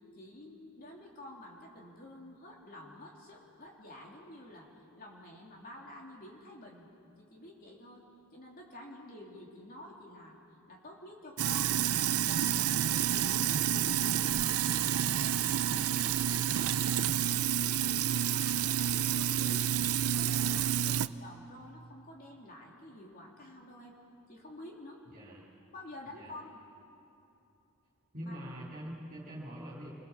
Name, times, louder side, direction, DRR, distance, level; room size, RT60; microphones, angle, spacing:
voice 1, 0.1-4.7 5.0-6.9 7.2-8.0 8.3-10.4 10.7-11.7 12.2-17.4 17.7-19.7 20.1-24.0 24.3-25.0 25.7-26.6 28.2-28.4, left 1 dB, 40° left, -1 dB, 3.3 m, -49 dB
Sink (filling or washing), 11.4-21.1, right 10 dB, 90° right, 0.5 m, -29 dB
voice 2, 28.1-29.9, equal, 40° right, -6 dB, 3.7 m, -44 dB
27.0 x 22.5 x 7.4 m, 2.9 s
head